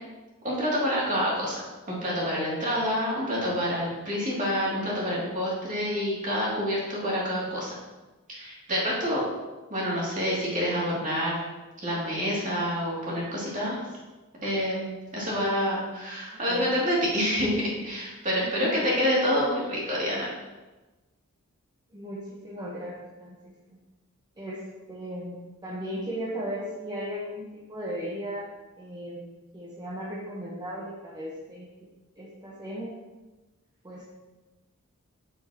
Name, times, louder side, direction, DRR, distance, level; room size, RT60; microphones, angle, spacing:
voice 1, 0.4-7.7 8.3-9.2 9.7-11.4 11.8-13.8 14.4-20.3, equal, 35° right, -5 dB, 2.6 m, -27 dB
voice 2, 16.3-16.7 18.4-18.7 21.9-23.8 24.4-24.6 24.9-28.4 28.8-29.2 29.5-31.7 32.2-33.0 33.8-34.0, equal, 20° right, -7 dB, 1.1 m, -36 dB
7.4 x 7.4 x 2.9 m, 1.1 s
head